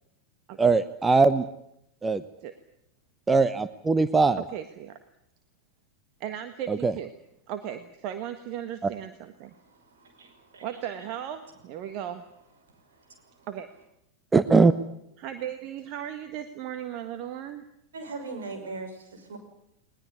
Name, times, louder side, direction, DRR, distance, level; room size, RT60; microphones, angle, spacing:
voice 1, 0.6-1.4 2.0-2.2 3.3-4.4 6.7-6.9 14.3-14.7, right 4 dB, 15° right, 13 dB, 0.9 m, -20 dB
voice 2, 4.4-5.0 6.2-7.1 7.5-9.5 10.6-12.2 13.5-13.7 15.2-17.6, right 10 dB, 40° right, 9 dB, 1.6 m, -36 dB
voice 3, 9.6-10.7 12.9-13.5 17.9-19.4, right 3 dB, 65° right, 5 dB, 5.8 m, -41 dB
20.5 x 20.5 x 9.8 m, 0.79 s
figure-of-eight pair, 90°, 0 cm